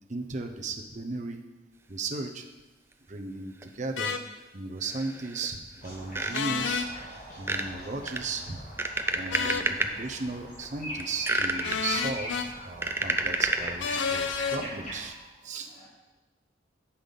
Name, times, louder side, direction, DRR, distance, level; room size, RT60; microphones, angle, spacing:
voice 1, 0.1-1.4 1.9-2.5 3.1-4.1 4.5-6.9 7.4-8.6 9.1-15.1 15.4-15.7, right 3 dB, 40° right, 4 dB, 0.8 m, -36 dB
sound 1, 3.6-3.7 4.0-4.1 4.8-5.5 5.8-6.6 7.3-7.7 8.1-9.9 10.4-10.7 11.0-11.8 12.4-13.8 14.3-14.5, right 2 dB, 15° right, 0.4 m, -30 dB
sound 2, 4.0-4.2 6.3-6.9 9.3-9.7 11.6-12.5 13.8-14.6, left 6 dB, 85° left, 0.6 m, -30 dB
sound 3, 5.8-15.1, equal, 45° left, 2.9 m, -42 dB
voice 2, 15.1-15.9, right 1 dB, ahead, -15 dB, 3.4 m, -59 dB
8.2 x 5.7 x 5.3 m, 1.1 s
head